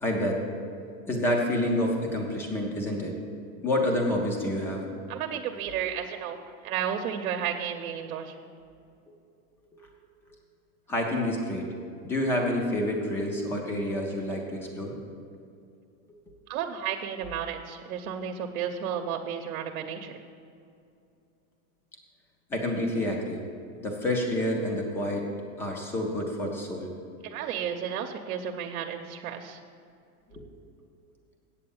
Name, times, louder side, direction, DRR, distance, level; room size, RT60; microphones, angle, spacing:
voice 1, 0.0-0.4 1.1-3.2 3.6-4.8 9.8-9.9 10.9-11.7 12.0-15.0 22.5-23.4 23.8-25.3 25.6-26.9 30.3-30.4, left 1 dB, 5° left, 1 dB, 0.4 m, -28 dB
voice 2, 5.1-8.3 16.5-20.2 27.2-29.6, right 8 dB, 80° right, 3 dB, 0.8 m, -33 dB
8.4 x 7.7 x 7.1 m, 2.5 s
supercardioid pair, 170°, 42 cm